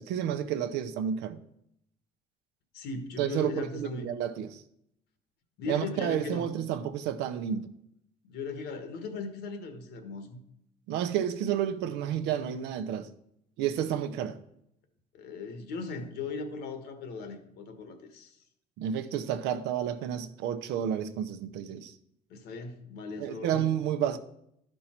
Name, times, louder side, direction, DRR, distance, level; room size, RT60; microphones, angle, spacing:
voice 1, 0.0-1.4 3.2-4.6 5.7-7.7 10.9-13.1 13.6-14.4 18.8-21.9 23.2-24.2, right 9 dB, 90° right, 0.7 m, -31 dB
voice 2, 2.7-4.1 5.6-6.5 8.3-10.4 15.1-18.4 22.3-23.7, left 4 dB, 80° left, 1.5 m, -38 dB
12.0 x 5.4 x 4.4 m
cardioid pair, 110°, 17 cm